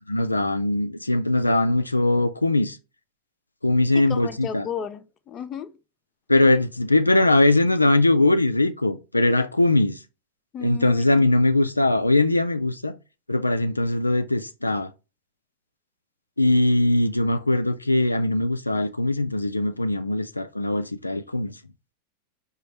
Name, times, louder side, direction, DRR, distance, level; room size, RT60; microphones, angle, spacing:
voice 1, 0.1-2.8 3.6-4.7 6.3-10.0 10.6-12.9 13.3-14.9 16.4-21.5, left 2 dB, 85° left, 0.3 m, -21 dB
voice 2, 3.9-5.7 10.5-11.2, left 7 dB, 25° left, 0.5 m, -34 dB
5.1 x 2.4 x 4.4 m
figure-of-eight pair, 90°, 0 cm